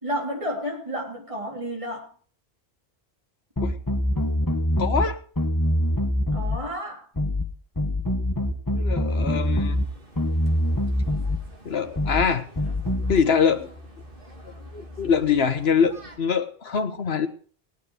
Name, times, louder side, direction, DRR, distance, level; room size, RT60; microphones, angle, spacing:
voice 1, 0.0-2.1 6.3-7.1, equal, 30° right, -1 dB, 3.8 m, -31 dB
sound 1, 3.6-5.1 5.4-6.6 7.2-7.5 7.8-9.9 10.2-11.4 12.0-12.3 12.6-13.2, left 1 dB, 20° left, 1.3 m, -24 dB
voice 2, 4.8-5.2 8.7-9.8 11.6-12.5 13.1-13.7 14.7-17.3, left 6 dB, 80° left, 10 dB, 1.5 m, -23 dB
sound 2, 9.1-16.2, equal, 60° right, 2.6 m, -47 dB
18.0 x 9.8 x 4.9 m, 0.44 s
omnidirectional pair, 1.0 m